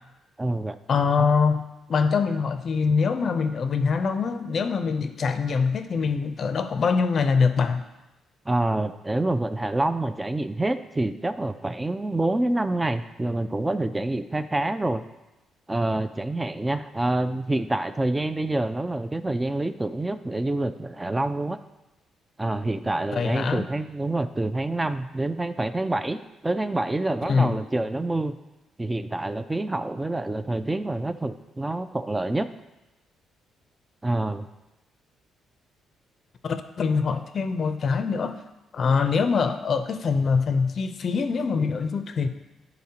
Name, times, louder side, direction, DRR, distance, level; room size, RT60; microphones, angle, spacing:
voice 1, 0.4-0.8 8.5-15.0 15.7-21.6 22.4-28.4 28.8-32.5 34.0-34.5, right 2 dB, 15° right, 11 dB, 0.4 m, -27 dB
voice 2, 0.9-1.6 1.9-7.8 23.1-23.7 27.3-27.6 36.4-38.4 38.7-42.3, left 5 dB, 50° left, 8 dB, 0.5 m, -24 dB
10.5 x 3.9 x 2.8 m, 1.0 s
cardioid pair, 90°, 0 cm